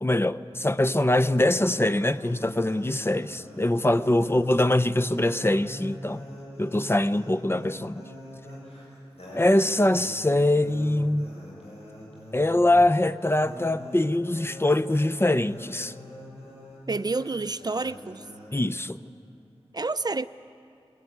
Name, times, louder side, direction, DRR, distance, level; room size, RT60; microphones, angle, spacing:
voice 1, 0.0-6.2 6.6-8.1 9.3-11.3 12.3-15.9 18.5-19.0, left 1 dB, 25° left, 0.6 m, -23 dB
sound 1, 1.2-18.5, left 1 dB, 85° left, 7.4 m, -43 dB
voice 2, 16.9-18.2 19.7-20.3, right 3 dB, 40° right, 0.5 m, -29 dB
22.0 x 17.5 x 9.6 m
wide cardioid pair, 65°, 10 cm